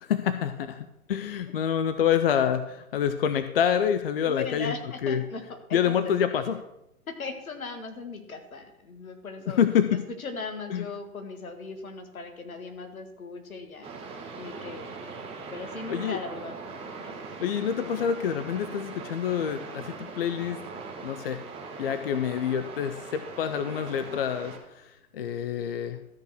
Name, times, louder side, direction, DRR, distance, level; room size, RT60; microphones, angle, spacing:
voice 1, 0.0-4.7 5.0-5.2 5.7-6.6 9.5-10.0 10.7-10.8 15.9-16.2 17.4-20.6 21.0-21.4 21.8-26.0, left 8 dB, 40° left, 10 dB, 0.6 m, -27 dB
voice 2, 4.2-6.1 7.1-9.6 9.9-13.9 14.4-14.9 15.5-16.6 17.0-18.0, left 4 dB, 70° left, 7 dB, 1.8 m, -38 dB
sound 1, 13.8-24.6, right 4 dB, 15° right, 1.4 m, -41 dB
13.5 x 5.3 x 6.3 m, 0.86 s
figure-of-eight pair, 120°, 44 cm